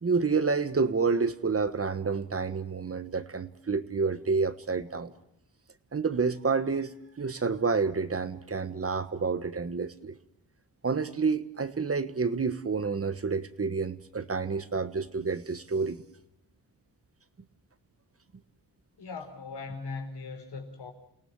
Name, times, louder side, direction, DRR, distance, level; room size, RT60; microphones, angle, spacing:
voice 1, 0.0-5.1 5.9-10.2 10.8-16.1, right 4 dB, 35° right, 1.3 m, -29 dB
voice 2, 19.0-20.9, left 4 dB, 85° left, 4.9 m, -39 dB
29.0 x 18.0 x 7.4 m
cardioid pair, 90°, 39 cm